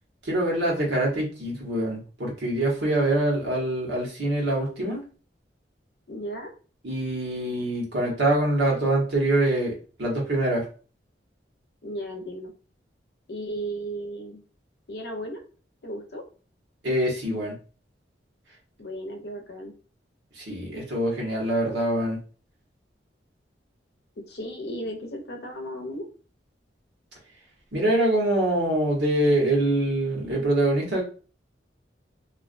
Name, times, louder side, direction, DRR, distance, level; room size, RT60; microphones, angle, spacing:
voice 1, 0.2-5.0 6.8-10.6 16.8-17.5 20.4-22.2 27.7-31.0, right 1 dB, 75° right, -2 dB, 1.1 m, -24 dB
voice 2, 6.1-6.5 11.8-12.5 13.3-14.4 14.9-15.4 15.8-16.2 18.8-19.7 24.2-26.1, right 1 dB, 60° left, 3 dB, 0.6 m, -35 dB
2.4 x 2.3 x 2.4 m, 0.37 s
head